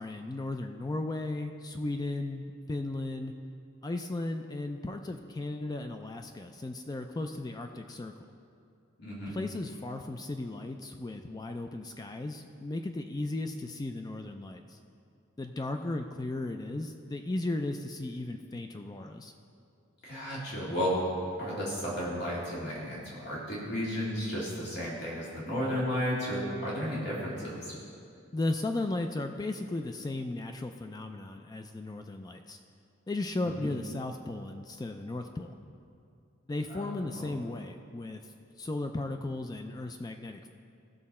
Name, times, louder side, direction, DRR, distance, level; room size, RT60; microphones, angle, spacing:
voice 1, 0.0-3.3 3.8-8.1 9.3-14.8 15.4-19.3 28.3-32.6 33.1-35.5 36.5-40.5, left 2 dB, 20° left, 6 dB, 0.3 m, -35 dB
voice 2, 9.0-9.3 20.0-21.0 21.4-27.7 33.6-33.7 36.7-37.3, equal, 55° left, -7 dB, 2.5 m, -33 dB
16.0 x 6.6 x 4.2 m, 2.5 s
head